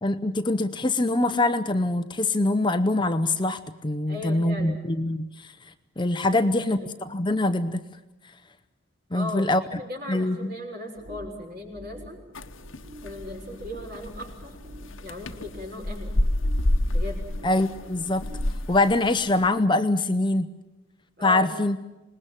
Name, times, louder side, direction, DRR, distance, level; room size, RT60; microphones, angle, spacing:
voice 1, 0.0-5.5 6.0-6.8 7.1-7.8 9.1-9.8 10.1-10.5 17.4-18.2 18.7-20.5 21.2-21.8, left 2 dB, 25° left, 10 dB, 0.8 m, -24 dB
voice 2, 4.1-4.8 6.3-6.9 9.1-12.2 13.0-14.6 15.0-16.1 16.9-17.3 21.2-21.5, left 2 dB, 50° right, 3 dB, 6.3 m, -37 dB
sound 1, 11.0-18.7, equal, 75° right, 3.8 m, -46 dB
sound 2, 12.3-19.5, left 1 dB, 75° left, 1.2 m, -29 dB
26.0 x 20.5 x 7.6 m, 1.1 s
head